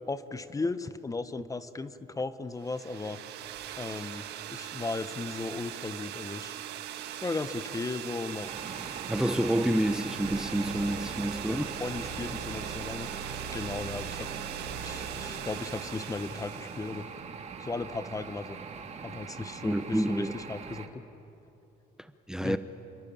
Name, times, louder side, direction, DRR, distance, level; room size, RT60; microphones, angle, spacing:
voice 1, 0.1-3.2 3.8-6.5 7.1-8.5 11.4-13.1 13.5-14.3 14.8-17.0 17.6-18.6 19.0-21.0 22.4-22.6, left 3 dB, 20° left, 12 dB, 1.1 m, -36 dB
sound 1, 2.6-17.1, right 12 dB, 80° right, 1.7 m, -41 dB
sound 2, 8.4-20.9, right 5 dB, 40° right, 2.6 m, -42 dB
voice 2, 9.1-11.7 19.6-20.3 22.0-22.6, right 1 dB, 5° right, 10 dB, 0.9 m, -28 dB
sound 3, 10.2-15.4, right 4 dB, 60° right, 5.5 m, -42 dB
29.0 x 23.5 x 8.8 m, 2.9 s
cardioid pair, 110°, 17 cm